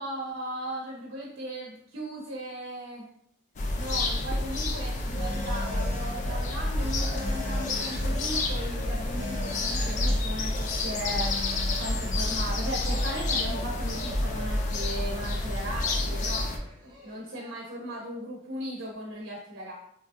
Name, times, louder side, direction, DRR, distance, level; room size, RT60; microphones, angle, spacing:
voice 1, 0.0-3.1 3.8-11.3 11.8-16.5 16.8-19.7, right 1 dB, 75° right, -3 dB, 0.6 m, -37 dB
sound 1, 3.6-16.6, left 2 dB, 40° left, 0.3 m, -29 dB
Telephone, 4.3-12.8, left 1 dB, 55° left, 1.0 m, -43 dB
Cheering, 5.8-17.5, equal, 25° right, 0.7 m, -49 dB
2.8 x 2.6 x 2.3 m, 0.73 s
head